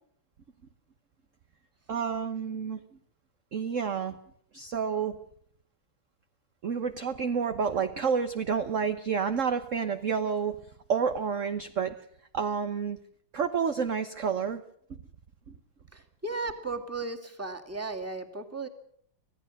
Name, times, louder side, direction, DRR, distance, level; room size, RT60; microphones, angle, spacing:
voice 1, 1.9-2.8 3.5-4.2 4.5-5.2 6.6-10.6 10.9-12.0 12.3-13.0 13.3-14.6 14.9-15.0 15.5-15.6, right 6 dB, 45° right, 8 dB, 1.2 m, -29 dB
voice 2, 15.9-18.7, right 3 dB, 5° right, 4 dB, 2.2 m, -35 dB
25.5 x 16.5 x 6.5 m, 0.64 s
omnidirectional pair, 2.2 m